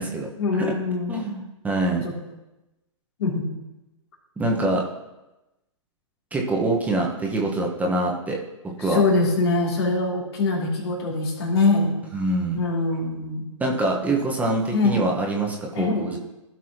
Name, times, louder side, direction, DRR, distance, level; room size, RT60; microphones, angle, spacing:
voice 1, 0.4-1.2 2.0-2.1 3.2-3.5 8.8-11.9 12.5-13.5 14.7-15.0 15.7-16.2, left 3 dB, 50° left, -1 dB, 3.0 m, -23 dB
voice 2, 1.1-2.0 4.4-4.8 6.3-8.4 8.8-9.0 12.1-12.6 13.6-16.2, right 2 dB, 10° right, -1 dB, 1.2 m, -24 dB
16.0 x 6.1 x 3.0 m, 0.99 s
figure-of-eight pair, 115°, 17 cm